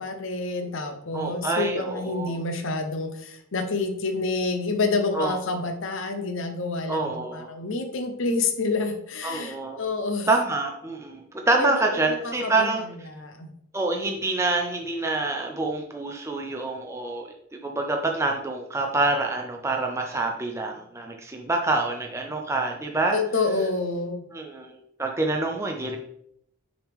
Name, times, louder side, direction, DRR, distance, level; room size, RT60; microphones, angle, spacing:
voice 1, 0.0-10.3 11.6-12.7 13.1-13.5 23.1-24.2, left 3 dB, 60° left, 6 dB, 0.7 m, -28 dB
voice 2, 1.1-2.4 5.1-5.4 6.9-7.5 9.2-9.8 10.3-12.8 13.7-23.2 24.3-26.0, right 2 dB, 10° right, 1 dB, 0.4 m, -26 dB
6.2 x 5.0 x 3.5 m, 0.74 s
head